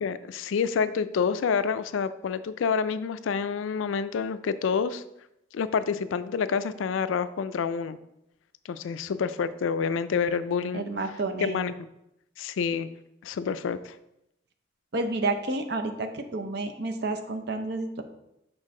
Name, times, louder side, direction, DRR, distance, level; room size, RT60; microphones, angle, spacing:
voice 1, 0.0-5.0 5.5-8.0 8.7-10.8 11.4-11.7 12.4-12.9 13.2-13.9, left 6 dB, 90° left, 14 dB, 0.4 m, -28 dB
voice 2, 10.7-11.7 14.9-18.0, right 2 dB, 55° right, 6 dB, 0.6 m, -30 dB
6.4 x 4.4 x 3.7 m, 0.84 s
head